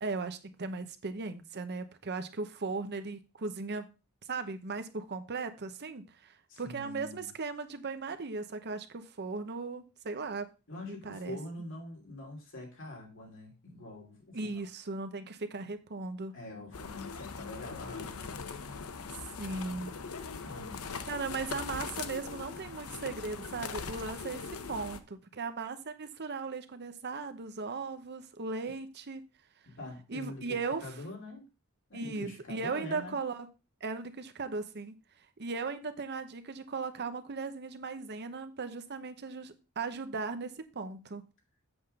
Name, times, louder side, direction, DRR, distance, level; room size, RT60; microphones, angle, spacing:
voice 1, 0.0-3.9 4.3-10.5 10.8-11.4 14.3-16.4 19.4-19.9 21.1-29.2 30.1-30.9 31.9-33.5 33.8-34.9 35.4-41.2, right 4 dB, 50° right, 9 dB, 0.8 m, -37 dB
voice 2, 6.5-7.2 10.7-14.7 16.3-18.3 20.4-21.1 29.6-31.5 31.9-33.2, left 2 dB, 60° left, -1 dB, 3.1 m, -44 dB
sound 1, 16.7-25.0, left 5 dB, 90° left, 0.8 m, -41 dB
7.9 x 3.7 x 6.6 m, 0.30 s
head